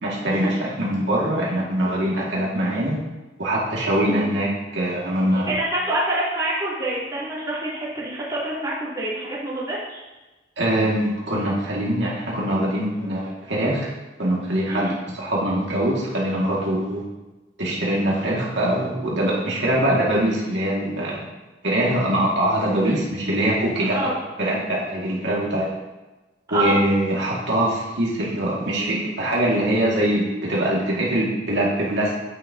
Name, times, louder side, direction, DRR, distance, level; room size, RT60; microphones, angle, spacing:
voice 1, 0.0-3.0 3.4-5.5 10.6-13.9 14.2-17.0 17.6-21.2 21.6-24.0 24.4-25.7 26.5-32.2, right 1 dB, 75° right, -5 dB, 2.1 m, -23 dB
voice 2, 5.3-10.0 14.7-14.9 23.8-24.1 26.5-26.8, right 1 dB, 20° right, -9 dB, 3.1 m, -26 dB
9.6 x 9.1 x 2.8 m, 1.1 s
head